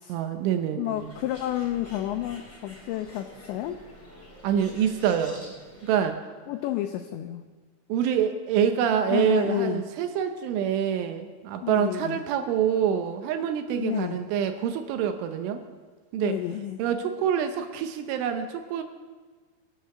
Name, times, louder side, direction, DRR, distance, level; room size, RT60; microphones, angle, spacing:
voice 1, 0.1-1.1 4.4-5.5 5.8-6.2 7.9-15.6 16.1-16.3 16.8-18.8, right 8 dB, 75° right, 7 dB, 3.1 m, -26 dB
voice 2, 0.8-3.8 6.5-7.4 9.1-9.8 11.6-12.2 13.8-14.2 16.2-16.8, left 13 dB, 90° left, 7 dB, 2.5 m, -30 dB
Bird, 1.0-6.0, equal, 5° left, 2.7 m, -48 dB
22.0 x 7.8 x 6.7 m, 1.4 s
omnidirectional pair, 6.0 m